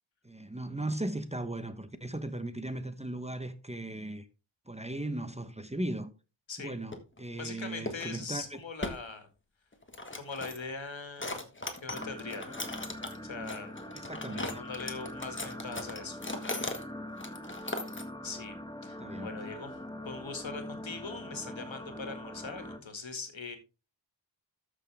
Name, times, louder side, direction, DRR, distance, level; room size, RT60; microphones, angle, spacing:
voice 1, 0.2-4.2 4.7-6.1 6.6-8.6 14.1-14.6 19.0-19.3, right 1 dB, 15° right, 0.9 m, -37 dB
sound 1, 6.9-7.2 7.9-8.1 8.4-8.5 8.8-9.0 9.7-10.7 11.2-13.2 13.5-16.8 17.2-18.1, left 2 dB, 25° left, 1.5 m, -38 dB
voice 2, 7.3-9.3 10.1-12.6 13.2-13.7 14.3-16.7 17.5-17.9 18.2-18.6 18.8-19.8 20.1-23.6, left 4 dB, 80° left, 2.0 m, -41 dB
sound 2, 11.9-22.8, left 1 dB, 10° left, 1.4 m, -43 dB
13.0 x 6.3 x 3.4 m
wide cardioid pair, 80°, 46 cm